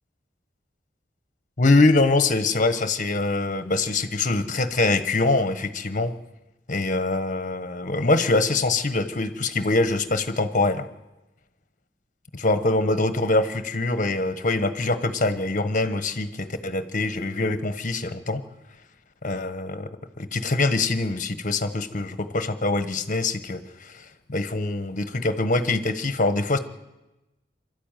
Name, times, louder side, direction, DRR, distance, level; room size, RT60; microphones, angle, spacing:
voice 1, 1.6-6.1 6.7-10.9 12.3-18.4 19.2-19.9 20.2-26.6, left 2 dB, 45° left, 11 dB, 1.3 m, -24 dB
24.0 x 13.0 x 9.2 m, 1.0 s
head